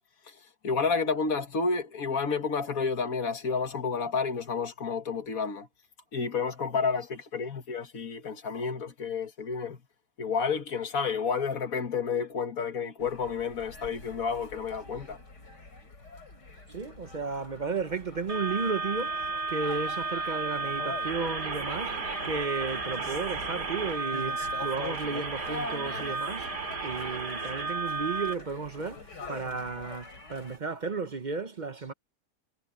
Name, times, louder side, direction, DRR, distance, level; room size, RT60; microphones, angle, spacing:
voice 1, 0.6-5.7 6.1-9.8 10.2-15.2, left 5 dB, 55° left, 1.9 m, -30 dB
sound 1, 13.0-30.6, left 3 dB, 85° left, 5.9 m, -44 dB
voice 2, 16.7-26.5 26.8-31.9, right 4 dB, 40° right, 0.7 m, -34 dB
sound 2, 18.3-28.3, right 4 dB, 75° right, 4.2 m, -33 dB
omnidirectional pair, 1.8 m